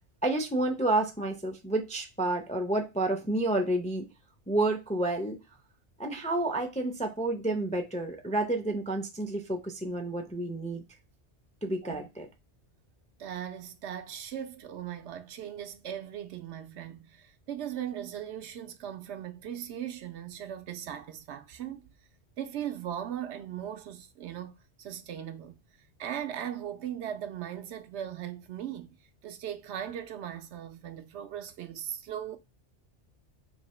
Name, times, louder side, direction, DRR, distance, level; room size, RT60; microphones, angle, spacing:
voice 1, 0.2-4.1 4.5-5.4 6.0-10.8 11.6-12.3, right 2 dB, 10° left, 0.3 m, -30 dB
voice 2, 13.2-21.9 22.4-25.6 26.0-32.4, right 10 dB, 80° right, 0.9 m, -38 dB
3.3 x 2.8 x 4.2 m
omnidirectional pair, 1.2 m